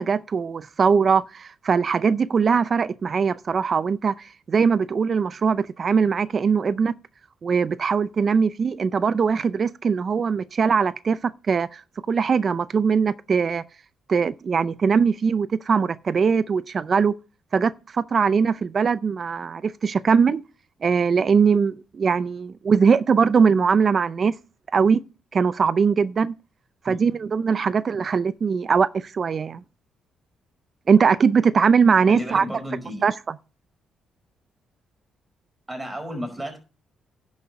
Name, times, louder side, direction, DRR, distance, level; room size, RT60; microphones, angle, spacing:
voice 1, 0.0-6.9 7.4-11.8 12.1-13.6 14.1-17.1 17.5-20.4 20.8-24.3 24.7-25.0 25.3-26.3 26.8-29.6 30.9-32.5 33.0-33.4, right 6 dB, 45° right, 0.5 m, -21 dB
voice 2, 32.1-33.0 35.7-36.6, equal, 15° right, 4.7 m, -33 dB
10.5 x 6.4 x 5.3 m
cardioid pair, 90°, 0 cm